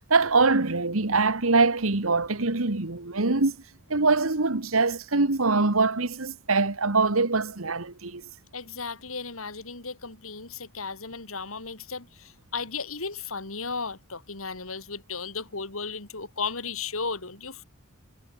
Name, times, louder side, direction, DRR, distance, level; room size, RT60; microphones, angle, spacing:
voice 1, 0.1-3.6 3.9-8.2, right 3 dB, 85° right, 1.7 m, -23 dB
voice 2, 8.5-17.6, left 4 dB, 90° left, 4.1 m, -35 dB
head